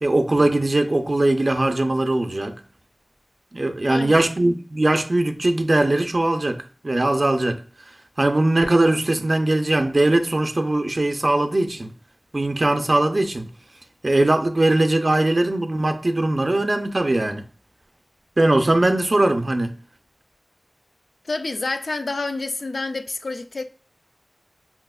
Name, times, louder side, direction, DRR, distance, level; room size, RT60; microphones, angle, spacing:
voice 1, 0.0-2.6 3.5-7.6 8.2-11.9 12.3-13.5 14.0-17.4 18.4-19.7, right 2 dB, 55° right, 0.4 m, -20 dB
voice 2, 3.9-4.3 21.2-23.6, left 3 dB, 80° left, 0.3 m, -28 dB
5.6 x 2.0 x 2.3 m
wide cardioid pair, 40°, 0 cm